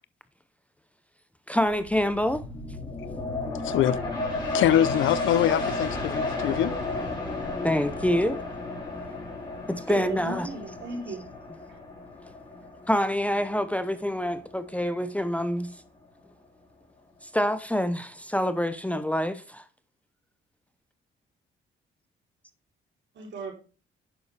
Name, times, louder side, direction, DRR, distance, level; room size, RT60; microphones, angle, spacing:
voice 1, 1.5-2.4 7.6-8.4 9.7-10.5 12.9-15.7 17.2-19.6, equal, 5° left, 0.7 m, -26 dB
sound 1, 1.6-14.9 15.3-15.4, left 2 dB, 20° left, 4.1 m, -33 dB
voice 2, 3.6-4.0 4.5-6.7, left 12 dB, 80° left, 0.6 m, -23 dB
voice 3, 9.9-11.2 23.1-23.6, right 3 dB, 65° right, 3.2 m, -35 dB
9.9 x 6.9 x 3.3 m
cardioid pair, 90°, 20 cm